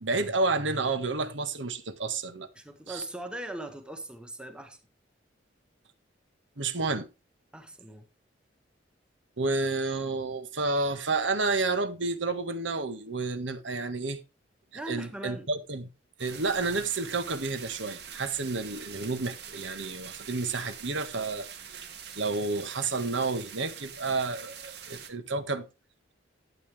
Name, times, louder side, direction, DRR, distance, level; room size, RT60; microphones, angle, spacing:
voice 1, 0.0-2.5 2.9-3.0 6.6-7.1 9.4-14.2 14.9-15.9 16.2-21.8 22.2-25.6, right 3 dB, 80° right, 1.5 m, -30 dB
voice 2, 2.5-4.8 7.5-8.1 14.7-15.5, right 1 dB, 5° right, 1.5 m, -40 dB
sound 1, 16.2-25.1, right 8 dB, 60° right, 2.0 m, -44 dB
12.5 x 8.6 x 3.5 m
head